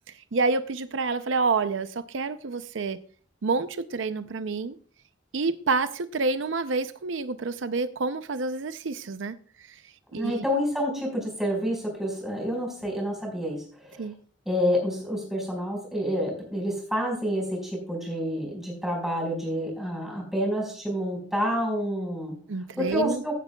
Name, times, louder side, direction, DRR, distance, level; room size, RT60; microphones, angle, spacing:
voice 1, 0.1-3.0 3.4-4.8 5.3-9.8 10.1-10.4 14.0-14.2 22.5-23.2, right 4 dB, 90° right, 0.6 m, -28 dB
voice 2, 10.1-14.0 14.4-22.4 22.8-23.3, equal, ahead, 5.0 m, -28 dB
16.0 x 9.5 x 2.3 m
head